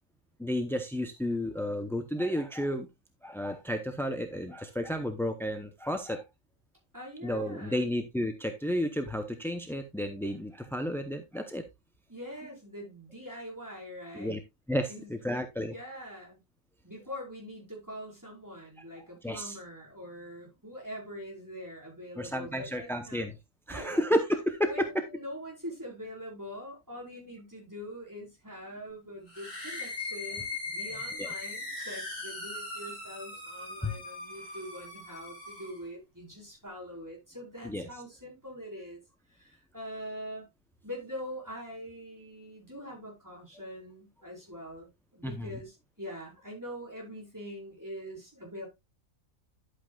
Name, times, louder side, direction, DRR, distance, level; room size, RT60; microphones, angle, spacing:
voice 1, 0.4-2.9 3.2-6.3 7.2-11.6 14.1-14.4 14.7-15.7 19.2-19.6 22.2-23.4 23.7-25.0 31.2-31.3 33.8-34.0 37.6-37.9 45.2-45.6, equal, 5° left, 0.5 m, -32 dB
voice 2, 6.9-7.9 12.1-14.4 14.9-16.4 16.8-23.3 23.7-24.1 24.6-39.0 39.3-40.5 40.8-48.7, equal, 15° right, 5.0 m, -43 dB
sound 1, 29.3-35.8, left 3 dB, 30° left, 4.8 m, -39 dB
11.5 x 8.3 x 2.4 m
omnidirectional pair, 1.4 m